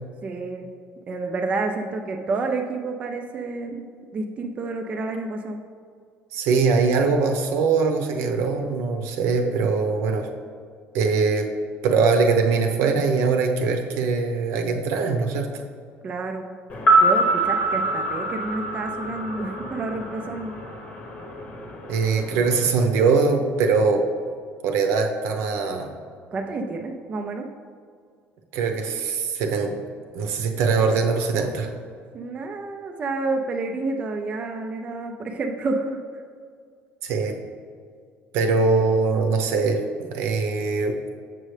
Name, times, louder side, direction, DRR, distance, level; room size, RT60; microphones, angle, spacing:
voice 1, 0.2-0.7 1.1-5.6 16.0-16.5 17.0-20.5 26.3-27.5 32.1-36.0, right 3 dB, 25° right, 4 dB, 0.4 m, -29 dB
voice 2, 6.3-10.3 10.9-11.5 11.8-15.5 21.9-24.0 24.6-25.9 28.5-29.7 30.1-31.7 37.0-37.3 38.3-41.1, right 4 dB, 75° right, 4 dB, 0.8 m, -22 dB
sound 1, 16.7-20.9 21.1-21.3, right 2 dB, 30° left, 0.8 m, -23 dB
7.4 x 6.3 x 3.3 m, 2.2 s
cardioid pair, 165°, 5 cm